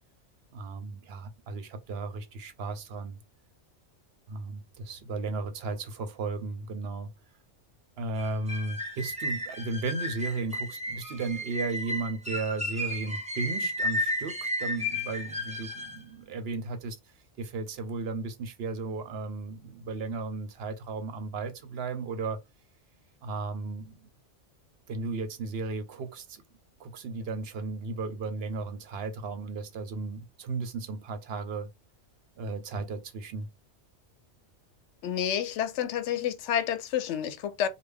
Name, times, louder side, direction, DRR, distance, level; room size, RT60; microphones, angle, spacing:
voice 1, 0.5-3.2 4.3-7.1 8.0-17.0 17.4-22.4 23.2-24.0 24.9-26.4 26.8-31.7 32.4-33.5, right 3 dB, 65° right, 0.8 m, -35 dB
sound 1, 8.2-16.0, left 1 dB, 10° right, 0.4 m, -33 dB
voice 2, 35.0-37.7, left 9 dB, 80° left, 0.9 m, -29 dB
3.3 x 2.2 x 3.4 m
omnidirectional pair, 1.2 m